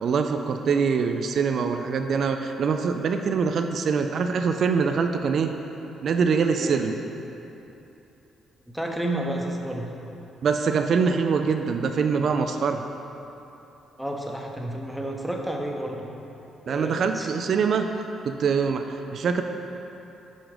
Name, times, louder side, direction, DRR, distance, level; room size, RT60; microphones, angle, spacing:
voice 1, 0.0-5.5 6.0-6.9 10.4-12.8 16.7-17.9 18.2-19.4, right 5 dB, 60° right, 6 dB, 0.3 m, -24 dB
voice 2, 6.5-6.8 8.7-9.9 14.0-16.1 16.7-17.3, right 1 dB, ahead, 0 dB, 0.8 m, -31 dB
6.2 x 5.0 x 5.0 m, 3.0 s
cardioid pair, 90°, 0 cm